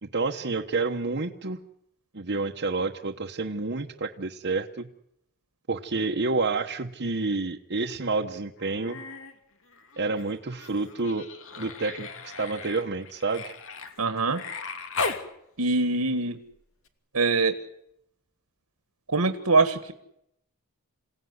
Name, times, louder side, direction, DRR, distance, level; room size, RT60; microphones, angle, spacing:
voice 1, 0.0-1.6 2.1-4.9 5.7-9.0 10.0-11.3 11.6-13.5, right 3 dB, 50° right, 1 dB, 1.2 m, -29 dB
Human voice, 8.6-9.3 9.7-15.3 16.9-17.0, left 4 dB, 60° left, 2.7 m, -37 dB
voice 2, 14.0-14.4 15.6-16.4 17.1-17.6 19.1-19.9, right 3 dB, 75° right, 9 dB, 1.8 m, -23 dB
27.5 x 17.5 x 9.7 m, 0.78 s
head